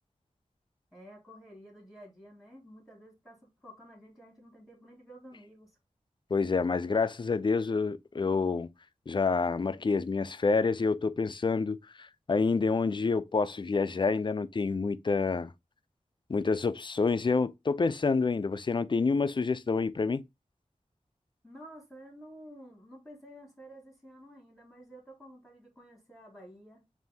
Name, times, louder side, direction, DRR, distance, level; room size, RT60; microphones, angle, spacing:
voice 1, 0.9-5.8 21.4-26.8, equal, ahead, 1.9 m, -51 dB
voice 2, 6.3-8.7 9.1-15.5 16.3-20.2, left 4 dB, 40° left, 0.4 m, -28 dB
3.4 x 2.7 x 4.0 m
wide cardioid pair, 65°, 13 cm